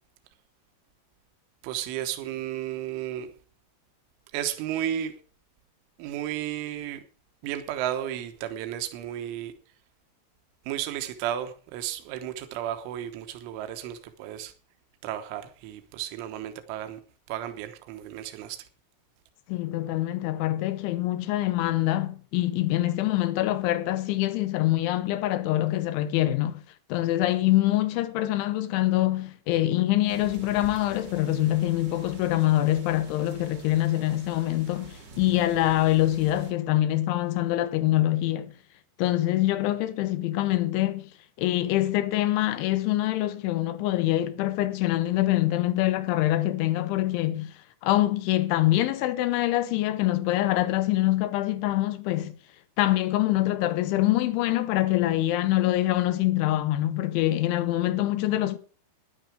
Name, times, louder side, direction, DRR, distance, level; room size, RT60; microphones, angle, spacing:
voice 1, 1.6-3.3 4.3-5.2 6.0-7.0 7.4-9.5 10.7-14.5 15.0-17.0 17.3-18.7, right 11 dB, 80° right, 3.6 m, -33 dB
voice 2, 19.5-26.6 26.9-38.5 39.0-41.1 41.4-47.5 47.8-52.3 52.8-58.6, left 15 dB, 80° left, 3.1 m, -25 dB
sound 1, 30.1-36.5, right 3 dB, 50° right, 1.3 m, -46 dB
12.5 x 11.0 x 4.9 m
omnidirectional pair, 5.7 m